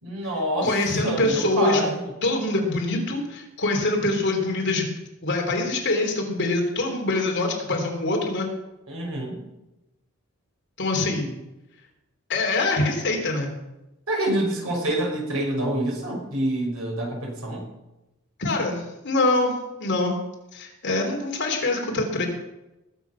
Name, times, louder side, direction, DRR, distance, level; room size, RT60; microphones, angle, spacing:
voice 1, 0.0-0.7 1.0-2.1 8.9-9.4 14.1-17.6, right 1 dB, 70° right, 0 dB, 5.1 m, -26 dB
voice 2, 0.6-1.9 2.2-4.9 5.2-8.5 10.8-11.3 12.3-13.5 18.4-20.2 20.5-22.3, left 2 dB, 50° left, 1 dB, 3.5 m, -24 dB
20.0 x 8.1 x 5.9 m, 0.95 s
head